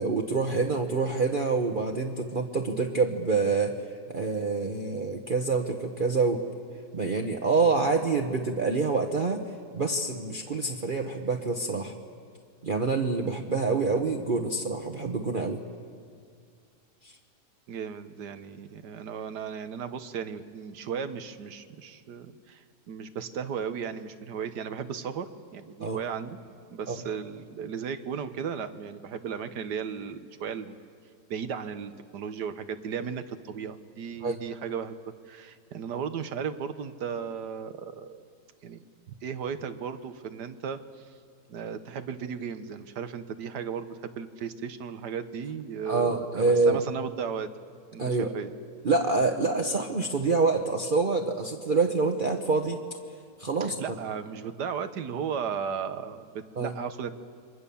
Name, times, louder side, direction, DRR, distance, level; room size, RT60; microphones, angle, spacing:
voice 1, 0.0-3.8 4.1-6.4 6.9-9.4 9.7-11.9 12.6-15.6 17.0-17.1 25.8-26.0 26.9-27.0 34.2-34.4 45.9-46.8 48.0-48.3 48.8-52.8 53.4-53.7 56.6-56.7, right 4 dB, 35° right, 2 dB, 1.2 m, -26 dB
voice 2, 17.7-26.4 26.7-30.8 31.3-35.0 35.2-38.2 38.6-41.1 41.5-47.5 47.9-48.5 53.6-57.1, right 7 dB, 90° right, 10 dB, 1.7 m, -35 dB
29.0 x 24.0 x 7.1 m, 2.1 s
omnidirectional pair, 1.7 m